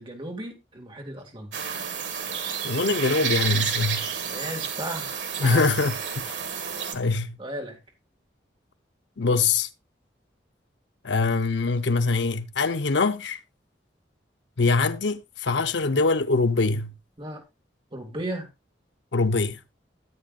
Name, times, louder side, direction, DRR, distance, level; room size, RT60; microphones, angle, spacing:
voice 1, 0.0-1.5 4.2-5.7 7.4-7.8 17.2-17.4 17.9-18.5, right 1 dB, 30° right, 2.4 m, -35 dB
sound 1, 1.5-6.9, right 7 dB, 85° right, 1.9 m, -30 dB
voice 2, 2.6-4.1 5.4-6.4 6.9-7.4 9.2-9.7 11.0-13.4 14.6-16.9 19.1-19.6, left 3 dB, 90° left, 0.8 m, -23 dB
13.5 x 8.5 x 2.5 m
head